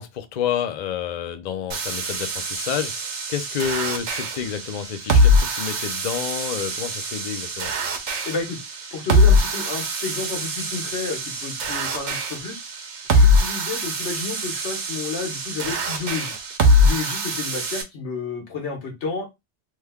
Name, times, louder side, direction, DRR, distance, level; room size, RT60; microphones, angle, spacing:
voice 1, 0.0-7.7, left 9 dB, 55° left, 0.5 m, -29 dB
sound 1, 1.7-17.8, left 1 dB, 85° right, 1.0 m, -23 dB
voice 2, 8.2-8.6 8.9-12.6 13.1-16.3 16.7-19.2, left 4 dB, 80° left, 1.4 m, -31 dB
3.1 x 2.2 x 3.4 m
omnidirectional pair, 1.1 m